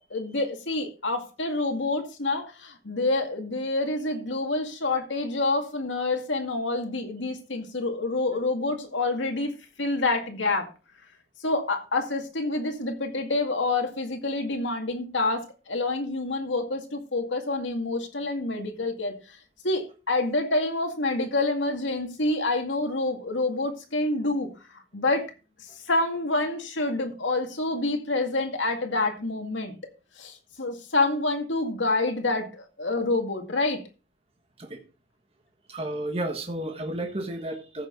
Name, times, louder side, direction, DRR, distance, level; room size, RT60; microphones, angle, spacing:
voice 1, 0.1-10.7 11.4-19.4 19.6-25.2 25.8-29.7 30.2-33.8, left 2 dB, 85° left, 2.1 m, -27 dB
voice 2, 35.7-37.9, right 1 dB, 30° right, 1.5 m, -32 dB
14.5 x 6.5 x 3.9 m
head